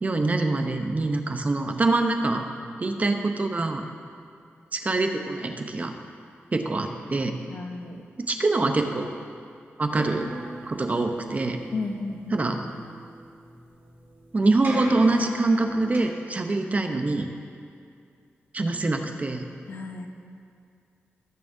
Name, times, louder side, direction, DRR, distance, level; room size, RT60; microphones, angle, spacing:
voice 1, 0.0-2.4 2.8-3.8 4.7-5.9 6.5-7.4 8.2-9.1 9.8-10.3 10.7-11.6 12.3-12.6 14.3-17.3 18.5-19.5, right 2 dB, 35° right, 5 dB, 0.8 m, -24 dB
voice 2, 7.5-8.0 11.7-12.4 19.7-20.1, left 3 dB, 60° left, 4 dB, 0.9 m, -33 dB
sound 1, 9.9-16.0, right 1 dB, 50° right, 1.6 m, -38 dB
18.5 x 7.2 x 2.7 m, 2.3 s
wide cardioid pair, 100°, 4 cm